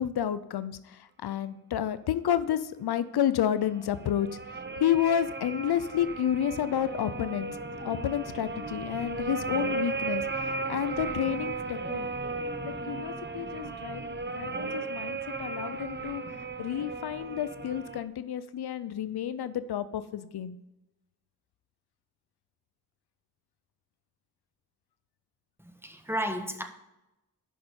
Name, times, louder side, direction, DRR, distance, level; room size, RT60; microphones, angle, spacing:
voice 1, 0.0-7.5 7.8-12.1 12.6-16.2 16.6-20.6, left 10 dB, 80° left, 14 dB, 0.5 m, -30 dB
sound 1, 3.7-18.0, right 3 dB, 30° right, 0.8 m, -35 dB
voice 2, 25.6-26.6, equal, 5° right, 5 dB, 1.3 m, -33 dB
6.4 x 5.7 x 6.9 m, 0.91 s
cardioid pair, 45°, 38 cm